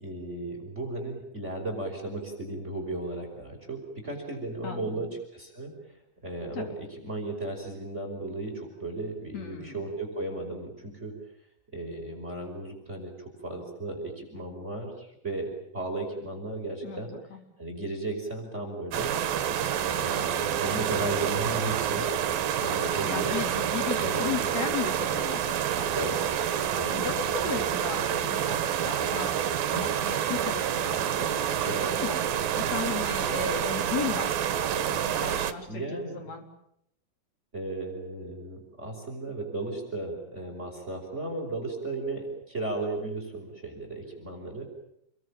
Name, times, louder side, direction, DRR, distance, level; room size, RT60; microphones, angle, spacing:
voice 1, 0.0-11.2 11.7-17.1 17.6-19.1 20.0-22.1 22.6-23.3 24.0-24.3 25.9-26.2 26.7-27.0 31.6-31.9 35.7-36.2 37.5-44.6, right 2 dB, 20° right, 3 dB, 5.5 m, -35 dB
voice 2, 4.6-5.1 6.5-6.7 9.3-9.8 16.8-17.4 22.6-26.4 26.9-29.3 29.7-32.2 32.5-36.4, left 6 dB, 45° left, 5 dB, 4.9 m, -36 dB
sound 1, 18.9-35.5, right 9 dB, 75° right, 3.0 m, -28 dB
28.5 x 22.5 x 8.9 m, 0.75 s
omnidirectional pair, 4.2 m